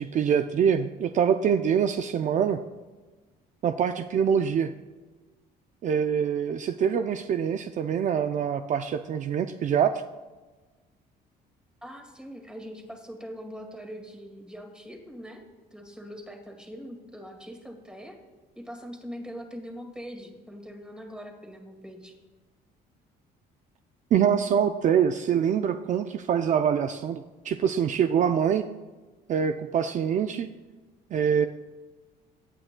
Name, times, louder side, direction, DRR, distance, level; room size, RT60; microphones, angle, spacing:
voice 1, 0.0-2.6 3.6-4.7 5.8-9.9 24.1-28.6 29.3-30.5 31.1-31.5, right 8 dB, 45° right, 8 dB, 0.4 m, -24 dB
voice 2, 11.8-15.4 15.7-18.2 18.6-22.2, equal, 5° right, 3 dB, 2.0 m, -42 dB
17.5 x 8.8 x 2.2 m, 1.3 s
cardioid pair, 110°, 17 cm